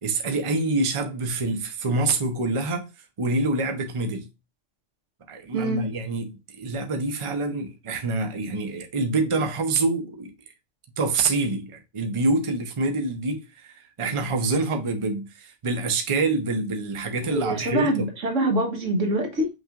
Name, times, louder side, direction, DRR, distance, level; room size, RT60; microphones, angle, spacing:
voice 1, 0.0-2.9 3.2-4.3 5.3-10.3 11.0-18.1, right 3 dB, 30° right, 0.7 m, -26 dB
voice 2, 5.5-5.9 17.3-19.5, right 1 dB, 80° right, 1.6 m, -25 dB
5.7 x 3.2 x 2.4 m
omnidirectional pair, 1.3 m